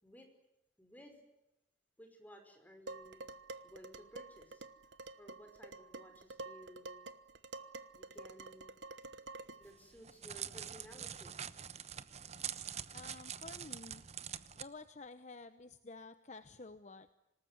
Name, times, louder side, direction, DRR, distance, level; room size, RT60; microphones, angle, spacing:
voice 1, 0.8-1.2 2.0-3.3 3.6-4.7 5.2-6.9 7.9-8.7 9.6-11.4, equal, 10° left, 4 dB, 5.4 m, -56 dB
Dishes pots and pans, 2.9-9.7, right 3 dB, 75° right, 1.2 m, -49 dB
Crackle, 9.7-14.6, right 8 dB, 35° right, 0.9 m, -45 dB
voice 2, 12.9-14.0 14.5-17.1, left 3 dB, 40° left, 11 dB, 0.9 m, -51 dB
26.5 x 19.5 x 9.6 m, 0.92 s
head